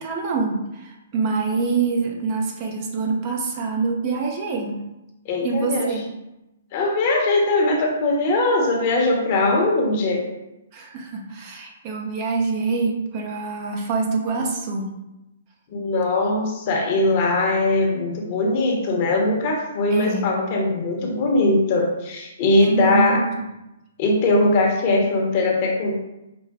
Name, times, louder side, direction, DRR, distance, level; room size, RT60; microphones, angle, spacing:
voice 1, 0.0-4.9 5.4-6.1 10.7-14.9 19.9-20.3 22.6-23.5, right 4 dB, 35° right, 0 dB, 0.7 m, -25 dB
voice 2, 5.2-5.9 6.7-10.3 15.7-23.2 24.0-26.0, left 2 dB, 45° left, 0 dB, 1.0 m, -20 dB
5.1 x 2.2 x 3.6 m, 0.93 s
hypercardioid pair, 130°, 0 cm